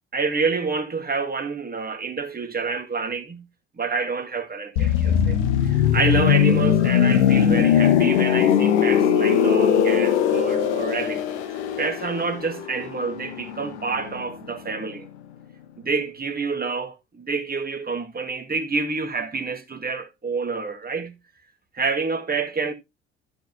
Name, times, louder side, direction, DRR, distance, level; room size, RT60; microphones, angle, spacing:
voice 1, 0.1-3.4 3.8-5.4 5.6-15.1 15.8-21.1 21.7-22.7, right 4 dB, 25° right, 2.2 m, -28 dB
sound 1, 4.8-14.4 14.7-14.9, left 9 dB, 80° left, 1.2 m, -20 dB
12.5 x 5.2 x 4.1 m
hypercardioid pair, 55°, 33 cm